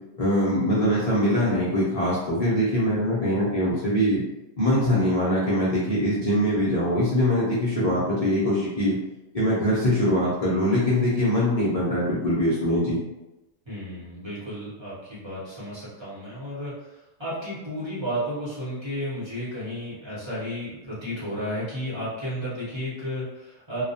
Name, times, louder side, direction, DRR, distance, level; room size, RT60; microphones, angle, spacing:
voice 1, 0.2-4.2 4.6-9.0 9.3-13.0, equal, 55° left, -8 dB, 0.4 m, -23 dB
voice 2, 13.6-23.8, equal, 25° right, -10 dB, 0.8 m, -33 dB
2.3 x 2.2 x 2.7 m, 1.0 s
omnidirectional pair, 1.4 m